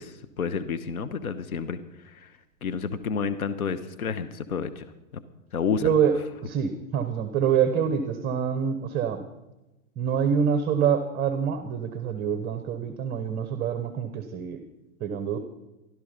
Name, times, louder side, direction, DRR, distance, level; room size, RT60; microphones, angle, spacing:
voice 1, 0.0-1.8 2.2-2.3 2.6-4.8 5.5-5.9, left 6 dB, 85° left, 10 dB, 1.2 m, -30 dB
voice 2, 5.8-9.3 10.0-14.6 15.0-15.4, right 7 dB, 20° right, 9 dB, 1.0 m, -26 dB
16.0 x 12.0 x 5.2 m, 1.0 s
hypercardioid pair, 130°, 42 cm